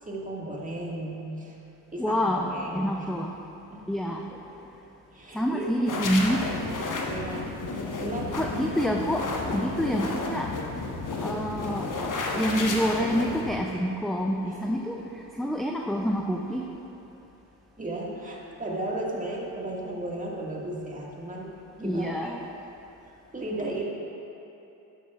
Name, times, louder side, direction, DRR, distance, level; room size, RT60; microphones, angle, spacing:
voice 1, 0.0-1.6 1.9-3.1 3.6-4.0 5.1-5.7 7.1-7.6 8.0-8.4 14.5-14.6 17.8-21.5 21.8-22.3 23.3-23.9, right 1 dB, 15° right, -3 dB, 1.8 m, -35 dB
voice 2, 2.0-3.3 3.9-4.2 5.3-6.4 8.3-9.3 9.5-10.5 11.2-11.9 12.3-16.8 21.8-22.4, equal, ahead, 0 dB, 0.4 m, -27 dB
sound 1, 5.9-13.6, left 3 dB, 40° left, 1.3 m, -32 dB
11.5 x 8.1 x 2.4 m, 2.9 s
hypercardioid pair, 50°, 48 cm